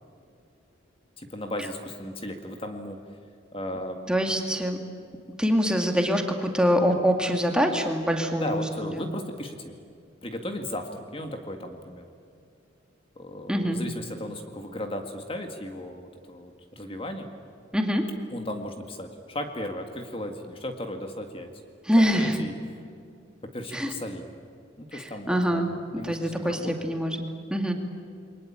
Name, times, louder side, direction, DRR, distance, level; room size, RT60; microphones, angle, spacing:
voice 1, 1.2-3.0 3.5-4.1 8.4-9.7 10.2-12.0 13.2-17.3 18.3-21.5 22.0-22.8 23.4-24.2 24.8-26.7, left 1 dB, 25° left, 5 dB, 1.9 m, -36 dB
voice 2, 4.1-4.8 5.4-9.0 13.5-13.8 17.7-18.1 21.8-22.4 23.7-23.9 24.9-27.2 27.5-27.7, equal, 5° right, 3 dB, 2.2 m, -24 dB
29.0 x 23.0 x 8.8 m, 2.4 s
head